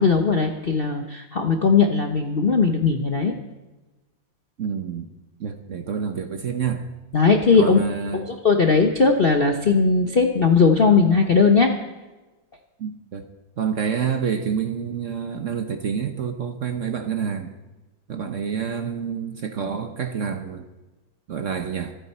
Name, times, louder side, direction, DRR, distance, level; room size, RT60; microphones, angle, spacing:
voice 1, 0.0-3.3 7.1-7.8 8.1-11.7, left 4 dB, 45° left, 4 dB, 0.7 m, -18 dB
voice 2, 4.6-5.1 5.4-6.8 7.5-8.3 12.8-13.2 13.6-17.5 18.1-20.7 21.3-21.9, right 7 dB, 50° right, 7 dB, 1.0 m, -28 dB
26.0 x 9.0 x 4.3 m, 1.1 s
omnidirectional pair, 2.1 m